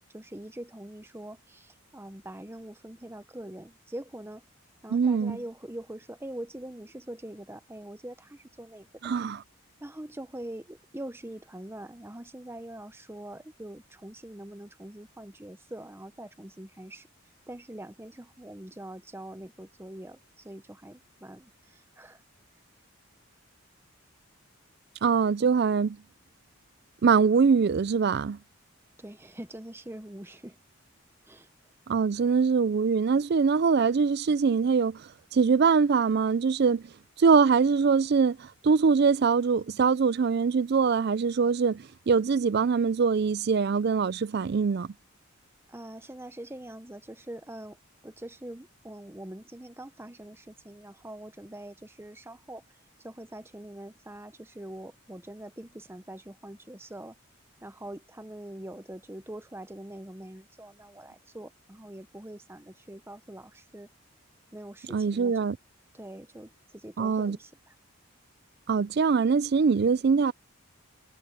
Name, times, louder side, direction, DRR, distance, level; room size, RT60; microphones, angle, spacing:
voice 1, 0.1-4.4 4.8-9.1 9.8-17.1 17.5-22.2 29.0-30.6 31.2-31.5 45.7-47.8 48.0-52.6 53.0-57.2 57.6-63.9 64.5-65.4 65.9-67.7, right 1 dB, 10° right, 0.8 m, -43 dB
voice 2, 4.9-5.4 9.0-9.4 25.0-26.0 27.0-28.4 31.9-35.0 35.3-36.8 37.2-44.9 64.9-65.6 67.0-67.4 68.7-70.3, right 5 dB, 50° right, 0.4 m, -23 dB
head